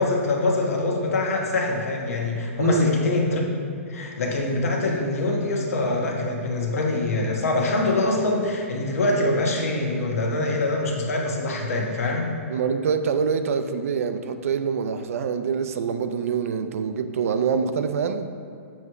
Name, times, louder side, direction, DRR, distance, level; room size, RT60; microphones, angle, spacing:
voice 1, 0.0-3.4 3.9-12.3, left 2 dB, 85° left, 0 dB, 1.3 m, -24 dB
voice 2, 2.6-2.9 12.5-18.3, right 6 dB, 75° right, 9 dB, 0.5 m, -25 dB
7.1 x 3.2 x 5.7 m, 2.4 s
hypercardioid pair, 145°, 8 cm